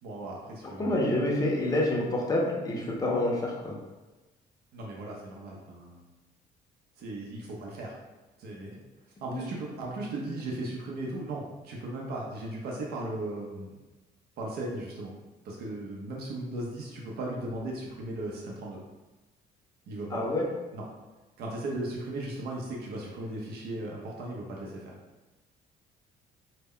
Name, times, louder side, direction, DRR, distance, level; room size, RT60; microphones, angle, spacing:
voice 1, 0.0-0.9 4.7-6.0 7.0-8.0 8.4-8.7 9.2-13.8 14.4-15.1 15.4-18.8 19.9-20.3 20.7-20.8 21.4-24.8, right 2 dB, 70° right, -3 dB, 0.6 m, -37 dB
voice 2, 0.6-3.8 9.3-9.4 20.1-20.4, left 1 dB, 20° left, -2 dB, 0.5 m, -28 dB
2.1 x 2.1 x 3.6 m, 1.1 s
cardioid pair, 110°, 17 cm